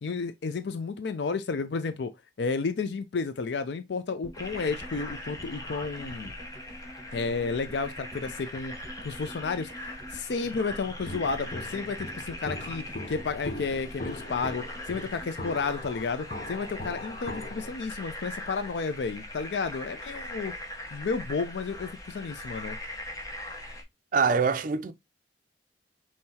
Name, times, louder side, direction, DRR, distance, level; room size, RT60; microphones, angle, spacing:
voice 1, 0.0-2.1 2.4-6.3 7.1-8.7 9.0-20.5 20.9-22.8, left 4 dB, 70° left, 0.4 m, -32 dB
sound 1, 4.2-16.5 16.7-16.8 17.0-17.1, right 1 dB, 25° right, 1.3 m, -48 dB
sound 2, 4.3-23.8, left 1 dB, 20° left, 0.9 m, -41 dB
Walk footsteps, 11.1-17.7, left 1 dB, 45° left, 0.9 m, -40 dB
voice 2, 24.1-24.9, right 5 dB, 50° right, 0.4 m, -24 dB
5.5 x 3.2 x 2.8 m
head